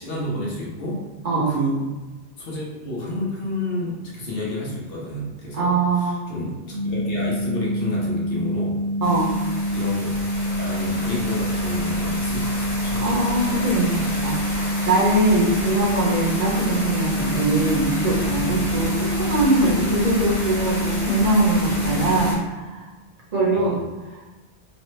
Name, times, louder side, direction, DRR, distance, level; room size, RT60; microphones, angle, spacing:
voice 1, 0.0-1.1 1.3-1.8 2.4-8.8 9.7-13.1 23.5-23.8, left 1 dB, 60° left, -4 dB, 1.0 m, -30 dB
voice 2, 5.5-6.3 9.0-9.3 13.0-22.9 23.3-23.8, right 2 dB, 40° right, -5 dB, 0.9 m, -22 dB
sound 1, 6.7-22.4, equal, 70° right, 1.5 m, -26 dB
sound 2, 9.0-22.3, left 1 dB, 40° left, 0.9 m, -31 dB
3.2 x 2.1 x 3.1 m, 1.2 s
omnidirectional pair, 1.1 m